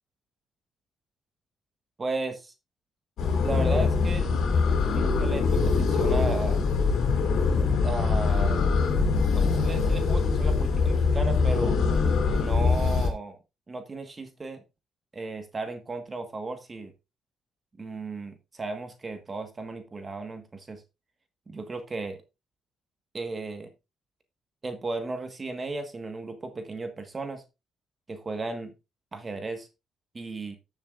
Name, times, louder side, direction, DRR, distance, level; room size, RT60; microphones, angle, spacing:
voice 1, 2.0-2.5 3.4-4.3 4.9-6.6 7.8-8.7 9.3-11.8 12.4-13.4 13.7-14.6 15.1-16.9 17.8-20.8 21.5-22.2 23.1-23.7 24.6-27.4 28.1-28.7 29.1-29.7 30.1-30.6, right 3 dB, 30° right, 7 dB, 1.4 m, -35 dB
sound 1, 3.2-13.1, left 4 dB, 75° left, 2.9 m, -23 dB
13.5 x 7.3 x 2.5 m, 0.25 s
cardioid pair, 90°, 0 cm